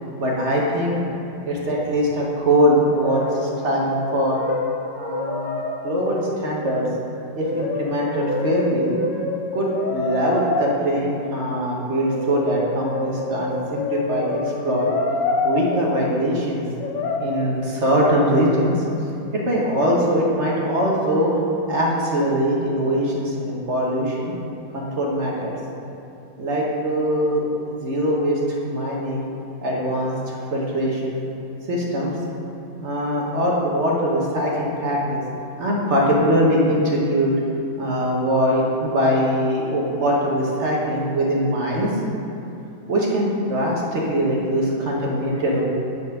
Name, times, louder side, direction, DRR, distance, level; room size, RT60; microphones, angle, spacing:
voice 1, 0.2-1.0 1.5-4.4 5.0-5.5 5.8-6.8 7.3-9.0 9.5-14.9 15.4-16.6 17.2-18.8 19.4-21.3 21.7-24.3 24.7-25.5 26.4-29.3 29.6-30.2 30.5-31.2 31.7-32.1 32.8-35.2 35.6-37.4 37.8-42.0 42.9-45.6, equal, 45° right, -3 dB, 1.3 m, -22 dB
Brass instrument, 2.9-3.6 3.9-6.4 7.4-10.6 12.0-15.8 16.8-17.3, left 3 dB, 75° left, 1.4 m, -27 dB
9.5 x 4.2 x 5.5 m, 2.7 s
omnidirectional pair, 1.9 m